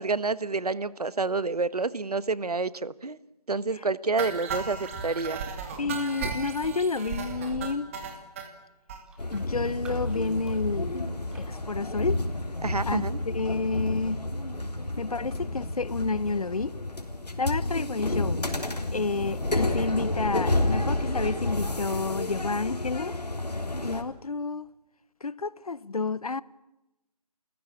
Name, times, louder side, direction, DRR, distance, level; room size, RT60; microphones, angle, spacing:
voice 1, 0.0-3.2 3.5-5.4 12.6-13.2, right 3 dB, 70° right, 1.3 m, -28 dB
sound 1, 4.2-8.5 8.9-9.0 9.3-9.4 9.6-9.8 10.1-10.2, right 5 dB, 20° right, 2.4 m, -35 dB
voice 2, 5.8-7.9 9.3-10.9 11.3-12.2 12.9-13.1 13.3-14.2 15.0-16.7 17.4-18.4 18.9-23.2 23.8-24.7 25.2-26.4, left 4 dB, 65° left, 1.0 m, -30 dB
Raindrop, 8.0-8.3 8.6-8.7 9.1-12.6 13.1-13.3, right 4 dB, 5° right, 1.2 m, -52 dB
sound 2, 9.2-24.0, left 2 dB, 80° left, 3.8 m, -30 dB
29.5 x 15.5 x 8.5 m
figure-of-eight pair, 160°, 20 cm